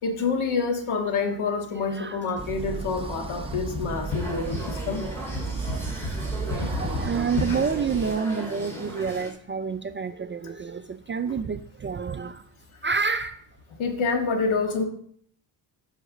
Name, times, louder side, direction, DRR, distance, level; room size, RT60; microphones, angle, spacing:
voice 1, 0.0-5.0 6.6-6.7 7.5-7.6 13.8-14.8, left 4 dB, 70° left, 1.8 m, -27 dB
voice 2, 1.9-2.4 2.7-2.8 4.4-4.5 6.4-12.4 12.8-13.5, right 5 dB, 25° right, 0.3 m, -29 dB
sound 1, 2.4-8.2, right 3 dB, 10° right, 0.8 m, -34 dB
sound 2, 4.1-9.3, right 1 dB, 5° left, 3.3 m, -37 dB
8.1 x 4.9 x 6.4 m
cardioid pair, 100°, 50 cm